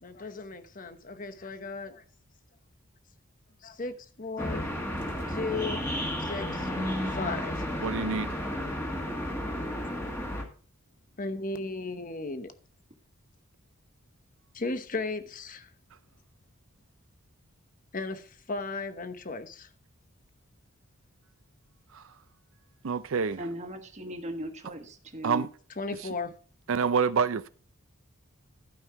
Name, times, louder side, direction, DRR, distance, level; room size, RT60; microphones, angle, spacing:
voice 1, 0.0-2.0 3.6-4.7 5.3-5.8 6.2-6.7 7.1-7.6 11.2-12.5 14.5-15.7 17.9-19.7 25.8-26.3, left 3 dB, 40° left, 0.9 m, -35 dB
sound 1, 4.4-10.4, left 1 dB, 10° left, 1.5 m, -32 dB
voice 2, 7.8-8.4 21.9-22.0 22.8-23.4 25.2-25.5 26.7-27.5, right 5 dB, 65° right, 0.5 m, -27 dB
voice 3, 23.4-25.4, equal, 30° right, 1.4 m, -38 dB
12.5 x 5.6 x 4.7 m
head